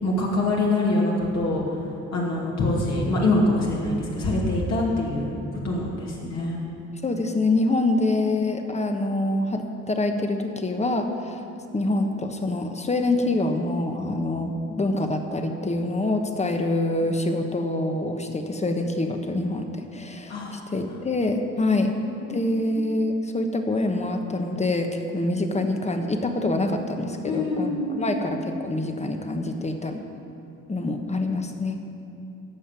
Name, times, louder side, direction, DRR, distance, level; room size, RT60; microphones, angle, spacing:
voice 1, 0.0-1.6 2.1-6.6 20.3-20.6 22.0-22.8 27.2-28.2, left 2 dB, 60° left, -4 dB, 2.7 m, -25 dB
voice 2, 7.0-11.4 11.7-21.9 22.3-30.0 30.7-31.8, left 2 dB, 20° left, 5 dB, 1.3 m, -25 dB
14.5 x 5.6 x 9.0 m, 2.7 s
cardioid pair, 90°, 30 cm